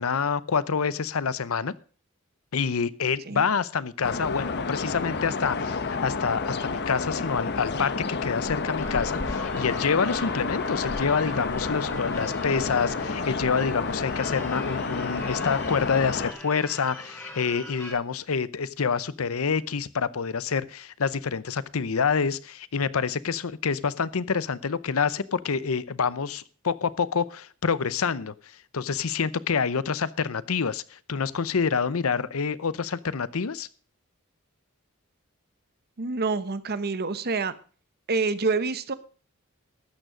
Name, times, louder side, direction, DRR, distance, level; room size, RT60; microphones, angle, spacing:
voice 1, 0.0-1.7 2.5-28.3 28.7-33.7, left 5 dB, 80° left, 18 dB, 0.7 m, -27 dB
sound 1, 4.0-16.3, left 4 dB, 50° left, 1.0 m, -30 dB
Church bell / Car / Alarm, 8.8-17.9, left 1 dB, 15° left, 4.6 m, -42 dB
voice 2, 36.0-37.5 38.1-38.9, right 4 dB, 50° right, 13 dB, 0.9 m, -27 dB
13.0 x 9.1 x 5.0 m, 0.39 s
head